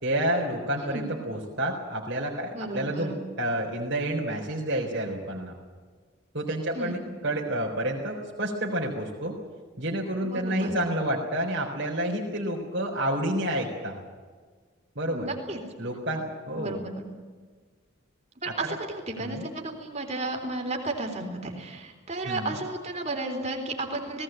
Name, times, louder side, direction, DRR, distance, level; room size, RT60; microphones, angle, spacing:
voice 1, 0.0-5.5 6.3-7.0 7.2-9.3 9.8-14.0 15.0-15.3 15.8-16.8 18.6-18.8 19.2-19.4 22.2-22.5, right 1 dB, 55° right, -4 dB, 4.1 m, -29 dB
voice 2, 2.5-3.1 6.7-6.9 10.2-10.8 15.1-15.6 16.6-17.0 18.4-24.2, right 2 dB, 30° right, 3 dB, 3.8 m, -33 dB
19.0 x 18.5 x 9.1 m, 1.5 s
head